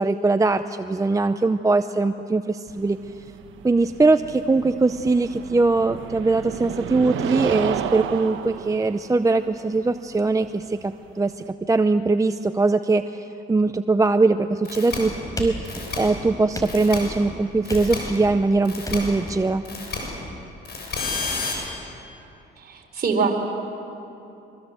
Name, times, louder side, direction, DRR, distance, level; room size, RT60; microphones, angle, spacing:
voice 1, 0.0-3.0 3.6-19.6, right 3 dB, 15° right, 10 dB, 0.6 m, -21 dB
sound 1, 2.7-11.5, right 9 dB, 80° right, 1.2 m, -32 dB
sound 2, 14.6-15.0 15.6-16.0 16.6-17.0 17.6-18.0 18.6-19.0 19.6-20.0 20.6-21.5, left 4 dB, 55° left, 7.1 m, -30 dB
sound 3, 15.4-16.1 16.5-17.2 17.7-18.3 18.8-19.4, equal, 15° left, 4.7 m, -34 dB
voice 2, 22.6-23.4, right 5 dB, 50° right, 3 dB, 4.0 m, -24 dB
24.0 x 23.5 x 7.9 m, 2.9 s
cardioid pair, 90°, 20 cm